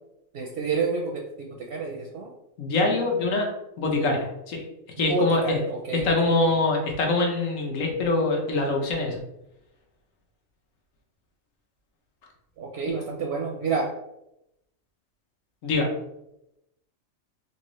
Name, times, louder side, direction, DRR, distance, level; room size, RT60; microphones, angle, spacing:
voice 1, 0.3-2.3 5.0-6.6 12.6-13.9, right 4 dB, 65° right, -1 dB, 0.7 m, -29 dB
voice 2, 2.6-3.5 3.8-4.6 5.0-5.6 5.9-9.2 15.6-15.9, left 2 dB, 75° left, 1 dB, 1.2 m, -24 dB
3.4 x 2.7 x 3.0 m, 0.85 s
omnidirectional pair, 1.4 m